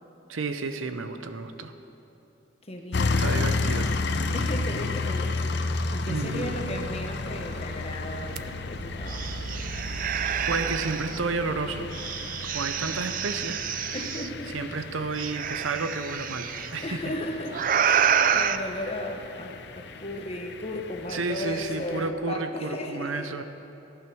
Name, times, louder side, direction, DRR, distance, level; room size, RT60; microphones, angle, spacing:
voice 1, 0.3-1.7 3.2-3.9 6.1-6.6 10.5-11.9 12.5-13.6 14.5-17.1 21.1-23.4, right 3 dB, 90° right, 9 dB, 0.8 m, -31 dB
voice 2, 2.6-3.3 4.3-5.5 5.9-9.3 13.9-14.5 16.8-23.3, left 1 dB, 30° left, 2 dB, 1.2 m, -35 dB
sound 1, 2.9-22.1, left 3 dB, 60° left, 0.6 m, -32 dB
sound 2, 3.4-18.0, right 1 dB, 60° right, 1.8 m, -51 dB
sound 3, 8.4-8.5 8.8-11.2 11.9-14.3 15.2-16.7 17.5-18.6, right 8 dB, 45° right, 0.4 m, -28 dB
14.5 x 9.1 x 6.2 m, 3.0 s
head